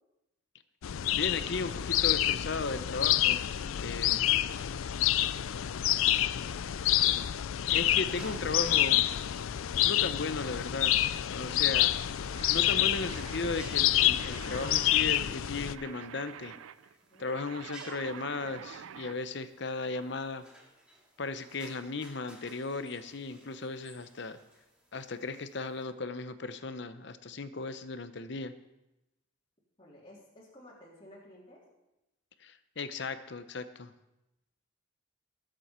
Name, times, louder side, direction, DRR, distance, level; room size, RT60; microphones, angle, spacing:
sound 1, 0.8-15.8, left 13 dB, 80° left, 0.4 m, -28 dB
voice 1, 1.1-3.5 3.7-4.3 7.7-9.1 9.8-10.9 11.3-11.9 12.5-16.6 17.2-20.4 21.2-24.4 24.9-28.5 32.4-33.9, left 3 dB, 55° left, 12 dB, 0.7 m, -36 dB
sound 2, 8.0-25.8, right 1 dB, 5° right, 2.1 m, -57 dB
sound 3, 12.3-19.2, right 8 dB, 85° right, 0.4 m, -47 dB
voice 2, 29.8-31.6, left 1 dB, 25° left, -6 dB, 3.2 m, -55 dB
19.5 x 7.7 x 4.4 m, 0.94 s
head